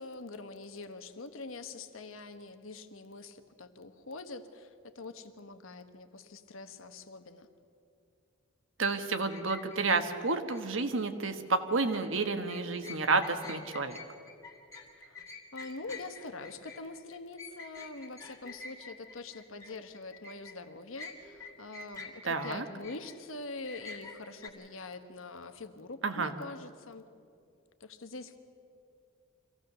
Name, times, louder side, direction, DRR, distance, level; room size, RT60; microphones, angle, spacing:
voice 1, 0.0-7.5 14.9-15.2 15.5-27.1 27.8-28.4, left 3 dB, 80° left, 8 dB, 1.2 m, -44 dB
voice 2, 8.8-14.0 22.2-22.6 26.0-26.3, right 3 dB, 70° right, 8 dB, 1.3 m, -30 dB
sound 1, 9.3-10.6 11.7-12.1 12.5-20.6 21.0-23.2 23.6-24.5, left 3 dB, 15° left, 2.1 m, -47 dB
24.5 x 16.5 x 6.8 m, 2.5 s
head